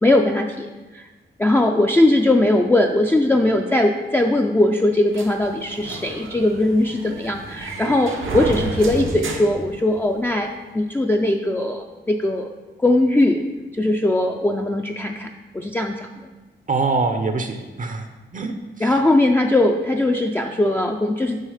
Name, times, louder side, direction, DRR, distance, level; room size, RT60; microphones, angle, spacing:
voice 1, 0.0-1.0 1.4-10.5 10.7-12.5 12.8-13.4 13.7-16.1 18.8-21.4, left 1 dB, 10° left, 2 dB, 0.4 m, -19 dB
sound 1, 5.1-10.4, right 3 dB, 85° right, 0.8 m, -31 dB
voice 2, 16.7-18.1 18.3-19.0, right 4 dB, 40° right, 6 dB, 0.6 m, -24 dB
6.3 x 4.7 x 4.9 m, 1.2 s
wide cardioid pair, 100°, 20 cm